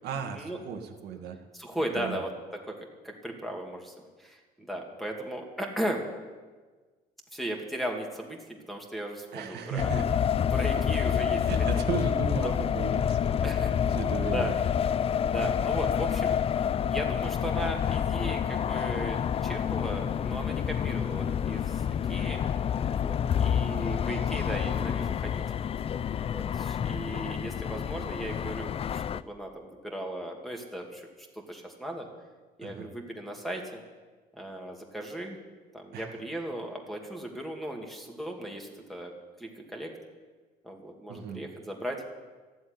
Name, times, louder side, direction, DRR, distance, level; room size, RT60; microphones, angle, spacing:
voice 1, 0.0-1.4 1.9-2.2 9.3-10.1 11.4-14.5 32.6-32.9 35.9-36.2 41.1-41.4, right 6 dB, 75° right, 4 dB, 1.7 m, -36 dB
voice 2, 1.5-2.3 2.7-2.8 3.0-3.9 4.2-6.0 7.3-8.4 8.7-9.9 10.5-11.8 13.4-13.7 14.2-14.5 15.2-16.4 16.8-22.4 22.9-25.4 26.1-31.1 31.3-32.1 32.6-33.8 34.3-35.4 35.7-39.1 39.4-39.9 40.6-42.0, right 1 dB, ahead, 1 dB, 2.4 m, -37 dB
sound 1, 9.8-29.2, left 8 dB, 35° left, 0.4 m, -28 dB
14.0 x 7.9 x 9.7 m, 1.4 s
cardioid pair, 110°, 17 cm